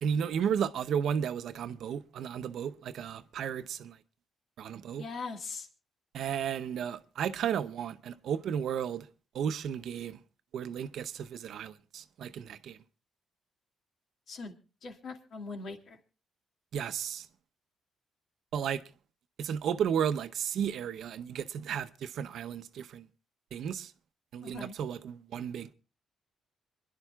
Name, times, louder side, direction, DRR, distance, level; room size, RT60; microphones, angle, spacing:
voice 1, 0.0-4.0 4.6-5.0 6.1-9.0 9.3-10.2 10.5-12.8 16.7-17.3 18.5-18.8 19.4-23.1 23.5-23.9 24.3-25.7, right 8 dB, 75° right, 0.7 m, -33 dB
voice 2, 5.0-5.7 14.3-14.5 14.8-16.0 24.4-24.7, left 4 dB, 65° left, 2.3 m, -41 dB
26.5 x 11.0 x 2.3 m
cardioid pair, 110°, 0 cm